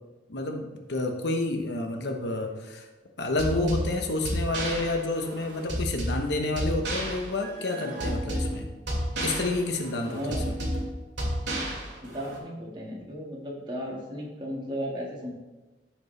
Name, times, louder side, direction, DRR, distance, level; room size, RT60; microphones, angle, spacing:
voice 1, 0.3-2.9 3.2-8.7 9.2-10.6, left 2 dB, 65° left, 3 dB, 1.0 m, -29 dB
sound 1, 3.4-12.4, equal, 70° right, 2.5 m, -32 dB
voice 2, 10.0-10.4 12.0-15.3, equal, 25° right, -2 dB, 1.7 m, -35 dB
14.5 x 5.2 x 3.2 m, 1.2 s
head